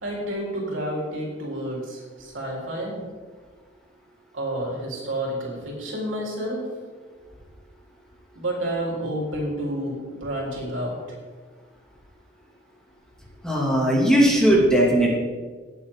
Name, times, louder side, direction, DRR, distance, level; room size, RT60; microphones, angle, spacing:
voice 1, 0.0-3.0 4.3-6.6 8.4-11.0, right 1 dB, 85° right, -3 dB, 3.8 m, -30 dB
voice 2, 13.4-15.1, right 1 dB, 5° left, -4 dB, 2.4 m, -18 dB
17.5 x 7.8 x 3.8 m, 1.5 s
head